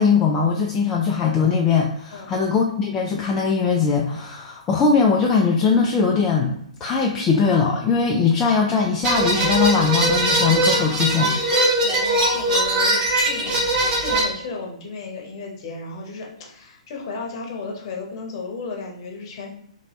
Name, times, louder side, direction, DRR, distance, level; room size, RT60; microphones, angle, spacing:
voice 1, 0.0-6.5 6.8-11.3, left 5 dB, 20° left, -1 dB, 0.3 m, -20 dB
sound 1, 9.0-14.2, right 1 dB, 25° right, 0.9 m, -20 dB
voice 2, 11.8-19.5, left 3 dB, 45° left, 0 dB, 0.9 m, -34 dB
3.0 x 2.8 x 3.0 m, 0.68 s
figure-of-eight pair, 120°, 4 cm